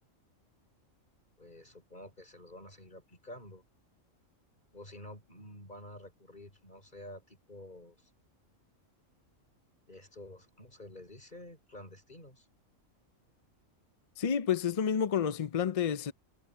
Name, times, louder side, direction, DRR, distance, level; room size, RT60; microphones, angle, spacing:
voice 1, 1.4-3.6 4.7-8.1 9.9-12.5, left 1 dB, 35° left, 5.6 m, -50 dB
voice 2, 14.2-16.1, left 8 dB, 65° left, 0.3 m, -29 dB
omnidirectional pair, 1.4 m